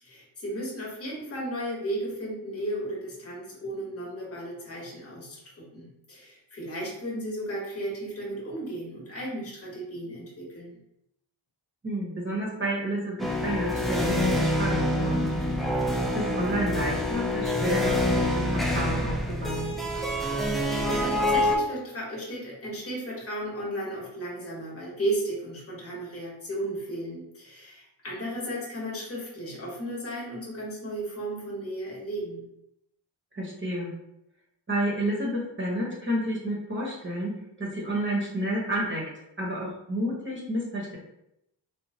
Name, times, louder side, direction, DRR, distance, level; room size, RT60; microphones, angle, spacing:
voice 1, 0.0-10.8 20.7-32.5, right 1 dB, 30° left, -4 dB, 1.1 m, -34 dB
voice 2, 11.8-15.2 16.1-19.7 33.3-33.9 34.7-37.3 37.6-39.0 39.4-41.0, right 1 dB, 25° right, -5 dB, 0.9 m, -30 dB
sound 1, 13.2-21.6, left 1 dB, ahead, 0.4 m, -26 dB
2.9 x 2.1 x 2.7 m, 0.81 s
cardioid pair, 50°, 46 cm